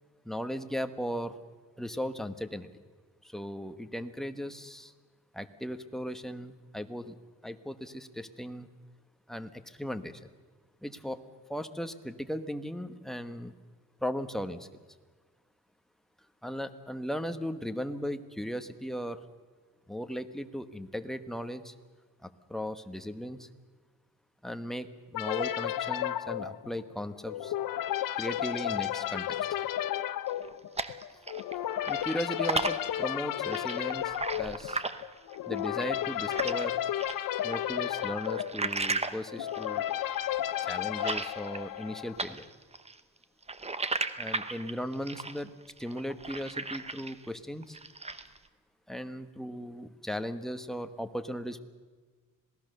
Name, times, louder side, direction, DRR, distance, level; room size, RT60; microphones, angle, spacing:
voice 1, 0.2-1.4 1.8-2.7 3.2-4.9 5.3-7.2 7.4-8.7 9.3-10.3 10.8-11.2 11.5-13.5 14.0-14.7 16.4-19.2 19.9-21.7 22.2-23.5 24.4-27.5 28.2-29.4 31.8-34.8 35.5-36.8 37.4-39.9 40.7-42.5 44.2-45.5 45.8-47.8 48.9-51.6, equal, ahead, 8 dB, 1.1 m, -37 dB
sound 1, 25.1-42.3, left 12 dB, 70° left, 0.9 m, -33 dB
sound 2, 30.3-31.5 31.8-36.7 37.0-41.9 42.2-47.3 47.6-48.4, right 3 dB, 20° right, 0.9 m, -36 dB
26.5 x 18.0 x 6.7 m, 1.4 s
cardioid pair, 115°, 35 cm